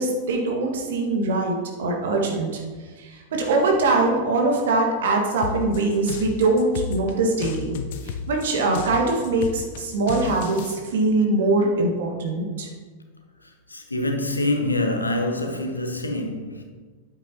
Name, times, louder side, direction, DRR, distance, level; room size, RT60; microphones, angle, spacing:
voice 1, 0.0-2.6 3.0-7.7 8.0-12.7, right 2 dB, 60° right, 1.7 m, -22 dB
sound 1, 5.4-10.7, left 6 dB, 50° left, 0.6 m, -33 dB
voice 2, 13.4-16.6, left 1 dB, 80° left, 1.0 m, -26 dB
9.1 x 8.3 x 2.9 m
figure-of-eight pair, 90°, 0 cm